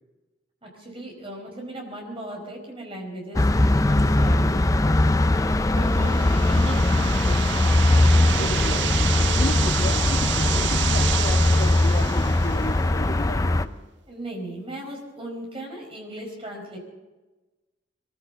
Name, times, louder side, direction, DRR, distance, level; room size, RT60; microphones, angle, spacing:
voice 1, 0.6-5.0 5.3-8.8 14.1-16.8, right 1 dB, 30° right, 1 dB, 4.8 m, -37 dB
sound 1, 3.3-13.6, left 2 dB, 20° left, 0.4 m, -20 dB
sound 2, 5.8-12.8, right 12 dB, 65° right, 0.4 m, -30 dB
voice 2, 8.4-13.8, left 1 dB, 55° left, 1 dB, 2.0 m, -34 dB
22.0 x 15.0 x 4.0 m, 1.1 s
head